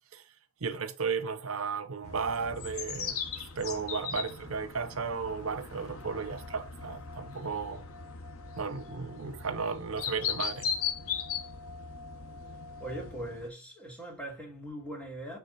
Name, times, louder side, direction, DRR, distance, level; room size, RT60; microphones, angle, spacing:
voice 1, 0.6-3.2 3.6-7.8 8.6-10.7, right 5 dB, 85° right, 0.8 m, -34 dB
sound 1, 2.0-13.5, left 6 dB, 85° left, 1.1 m, -38 dB
voice 2, 12.8-15.4, right 1 dB, 5° left, 2.9 m, -40 dB
8.9 x 3.7 x 4.1 m
head